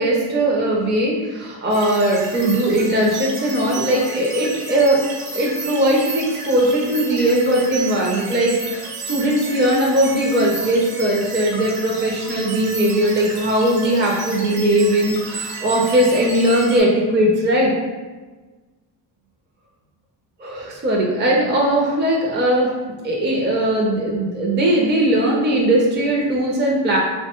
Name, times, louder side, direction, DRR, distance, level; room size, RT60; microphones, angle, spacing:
voice 1, 0.0-5.0 5.3-17.7 20.4-22.7 23.0-27.0, right 1 dB, 25° right, -2 dB, 0.5 m, -19 dB
sound 1, 1.7-16.8, right 3 dB, 85° right, 0.9 m, -32 dB
2.7 x 2.2 x 2.9 m, 1.3 s
cardioid pair, 70°, 49 cm